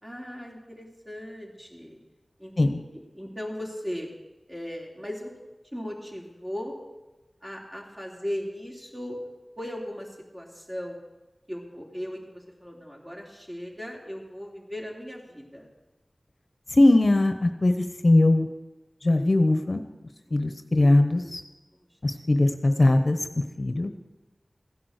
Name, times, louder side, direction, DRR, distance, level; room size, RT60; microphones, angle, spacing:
voice 1, 0.0-2.0 2.4-4.1 4.5-5.3 5.7-6.8 7.4-9.3 9.6-11.0 11.5-15.7 20.3-20.4 21.7-22.0 23.3-23.4, equal, 20° right, -1 dB, 3.3 m, -37 dB
voice 2, 16.7-18.5 19.0-19.8 20.3-21.4 22.0-23.2 23.6-23.9, left 2 dB, 50° left, 7 dB, 0.9 m, -20 dB
15.5 x 10.5 x 6.6 m, 1.1 s
wide cardioid pair, 65°, 0 cm